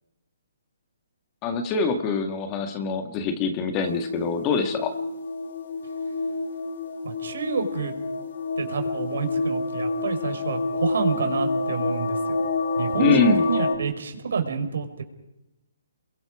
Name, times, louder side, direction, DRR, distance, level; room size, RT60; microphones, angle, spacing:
voice 1, 1.4-4.9 13.0-13.5, left 4 dB, 20° left, 7 dB, 1.7 m, -24 dB
sound 1, 3.8-13.8, left 3 dB, 55° left, 3.4 m, -28 dB
voice 2, 7.0-7.9 8.6-12.4 12.8-15.0, right 5 dB, 70° right, 6 dB, 4.8 m, -28 dB
28.5 x 22.5 x 5.0 m, 0.92 s
hypercardioid pair, 165°, 0 cm